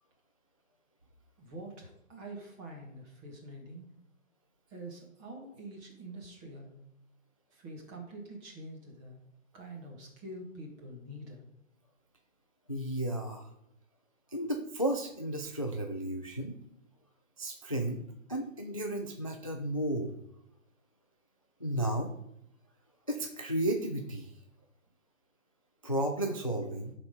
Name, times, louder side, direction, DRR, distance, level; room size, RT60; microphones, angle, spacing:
voice 1, 1.4-3.9 4.7-6.7 7.5-9.2 9.5-11.4, right 1 dB, 15° right, 0 dB, 1.4 m, -46 dB
voice 2, 12.7-13.5 14.3-16.5 17.4-18.0 18.3-20.2 21.6-22.1 23.1-24.3 25.8-26.9, right 1 dB, 30° left, 3 dB, 0.4 m, -33 dB
11.0 x 4.1 x 5.0 m, 0.79 s
figure-of-eight pair, 145°, 40 cm